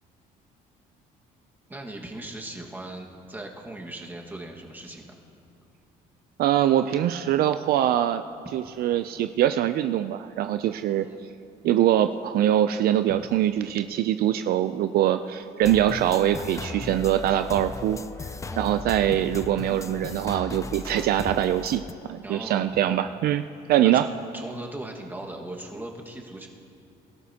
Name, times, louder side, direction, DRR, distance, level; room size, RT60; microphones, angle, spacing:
voice 1, 1.7-5.2 10.9-11.2 18.5-18.9 20.3-20.4 22.2-22.8 23.8-24.1 24.3-26.5, right 1 dB, 10° right, 0 dB, 1.7 m, -39 dB
voice 2, 6.4-8.2 8.5-11.1 11.6-18.0 18.6-21.8 22.1-23.4 23.7-24.1, right 11 dB, 65° right, 10 dB, 0.4 m, -23 dB
sound 1, 15.6-21.9, left 4 dB, 20° left, 0.4 m, -37 dB
24.0 x 13.0 x 2.9 m, 2.6 s
cardioid pair, 110°, 17 cm